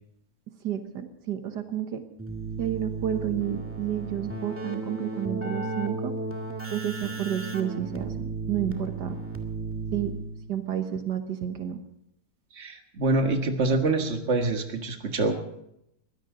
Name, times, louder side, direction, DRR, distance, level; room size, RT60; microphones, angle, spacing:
voice 1, 0.6-2.0 2.6-6.1 6.7-9.2 9.9-10.1 10.5-11.8, right 10 dB, 85° right, 7 dB, 1.9 m, -31 dB
Keyboard (musical), 2.2-10.5, right 3 dB, 10° right, 1.8 m, -34 dB
voice 2, 12.5-15.6, right 2 dB, 40° right, 4 dB, 2.0 m, -26 dB
22.0 x 16.5 x 3.9 m, 0.78 s
omnidirectional pair, 1.8 m